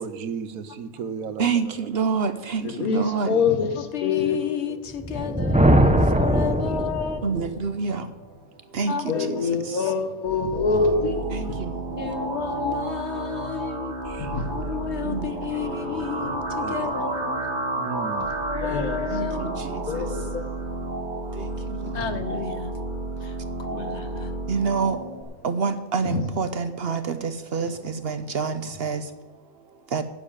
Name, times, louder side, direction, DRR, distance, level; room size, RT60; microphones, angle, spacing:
voice 1, 0.0-2.0 6.2-7.2 10.7-11.5 11.9-12.2 14.0-14.6 16.6-17.2 17.7-18.3, right 6 dB, 80° right, 1.3 m, -37 dB
voice 2, 1.4-3.4 7.2-10.1 11.3-12.0 15.0-15.7 19.1-22.1 24.5-30.0, right 5 dB, 55° right, 0.8 m, -29 dB
voice 3, 2.8-4.8 9.1-11.2 11.5-11.6 14.2-14.5 18.6-19.0 19.9-20.5 21.9-22.0 26.1-26.2, left 4 dB, 90° left, 1.7 m, -25 dB
voice 4, 3.8-7.2 8.9-9.5 9.8-10.0 12.0-14.0 14.5-17.5 18.5-19.6 21.9-22.7 23.2-23.3 23.7-24.4, left 7 dB, 55° left, 1.2 m, -32 dB
Thunder, 4.9-7.6, right 1 dB, 10° right, 0.4 m, -20 dB
sound 1, 10.3-25.2, right 2 dB, 35° right, 1.9 m, -31 dB
9.8 x 8.1 x 8.8 m
omnidirectional pair, 1.5 m